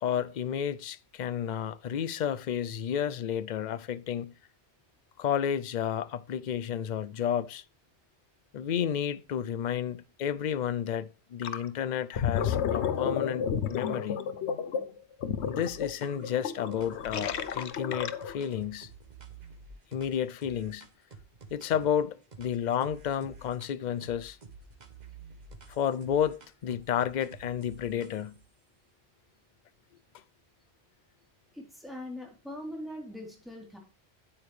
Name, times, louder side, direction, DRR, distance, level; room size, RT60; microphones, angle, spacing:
voice 1, 0.0-4.3 5.2-7.6 8.5-14.2 15.5-18.9 19.9-20.9 21.5-24.4 25.7-28.4, left 9 dB, 50° left, 0.6 m, -31 dB
Gurgling, 11.4-11.7 12.0-18.5, left 8 dB, 90° left, 1.0 m, -31 dB
sound 1, 15.6-16.3 16.7-22.0 22.3-23.7 24.0-28.4, right 4 dB, 45° right, 1.2 m, -50 dB
voice 2, 31.5-33.8, left 1 dB, ahead, 3.4 m, -41 dB
8.9 x 8.7 x 3.2 m
omnidirectional pair, 1.1 m